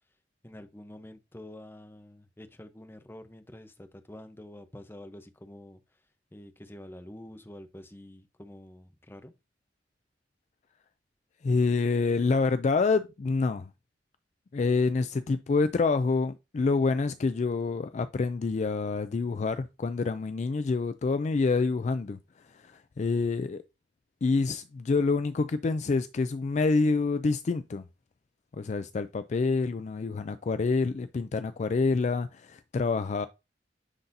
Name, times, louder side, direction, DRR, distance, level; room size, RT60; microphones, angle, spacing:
voice 1, 0.4-5.8 6.3-9.3, left 1 dB, 15° left, 0.7 m, -47 dB
voice 2, 11.4-13.7 14.5-22.2 22.5-23.6 24.2-27.8 28.6-33.3, left 4 dB, 40° left, 0.3 m, -27 dB
9.7 x 4.0 x 2.6 m
head